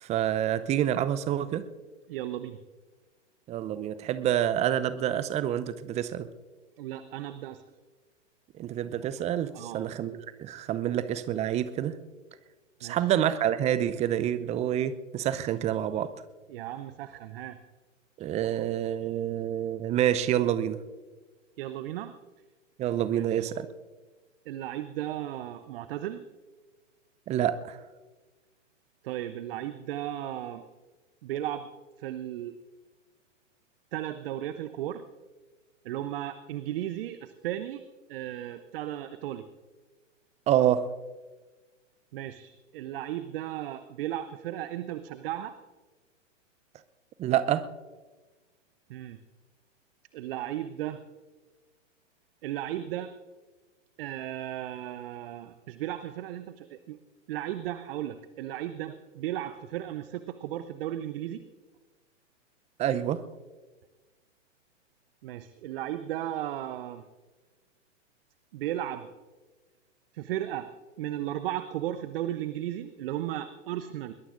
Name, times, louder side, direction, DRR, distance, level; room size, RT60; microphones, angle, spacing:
voice 1, 0.0-1.6 3.5-6.3 8.6-11.9 12.8-16.1 18.2-20.8 22.8-23.7 27.3-27.8 40.5-40.8 47.2-47.6 62.8-63.2, right 11 dB, 20° right, 14 dB, 0.6 m, -27 dB
voice 2, 2.1-2.6 6.8-7.6 9.5-9.9 12.8-13.1 16.5-17.6 18.5-18.7 21.6-22.1 23.1-23.5 24.5-26.2 29.0-30.6 31.2-31.7 32.0-32.6 33.9-35.0 35.8-37.8 38.1-39.4 42.1-45.6 48.9-49.2 50.1-51.0 52.4-53.2 54.0-57.0 57.3-61.4 65.2-67.1 68.5-69.1 70.1-70.7 71.0-74.1, right 12 dB, 45° right, 12 dB, 0.8 m, -35 dB
21.5 x 21.5 x 2.6 m, 1.3 s
figure-of-eight pair, 110°, 38 cm